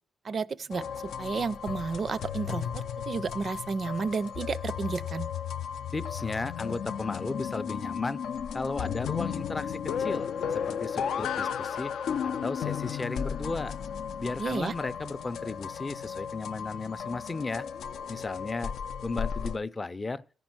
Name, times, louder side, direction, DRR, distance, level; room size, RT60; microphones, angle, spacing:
voice 1, 0.2-5.3 14.4-14.7, right 4 dB, 45° right, 0.4 m, -32 dB
sound 1, 0.7-19.6, left 8 dB, 80° left, 0.4 m, -34 dB
voice 2, 5.9-8.2 8.5-11.9 12.2-13.8 14.2-17.7 18.1-18.7 19.0-20.2, left 3 dB, 20° left, 0.4 m, -35 dB
14.0 x 5.3 x 6.0 m
cardioid pair, 130°, 0 cm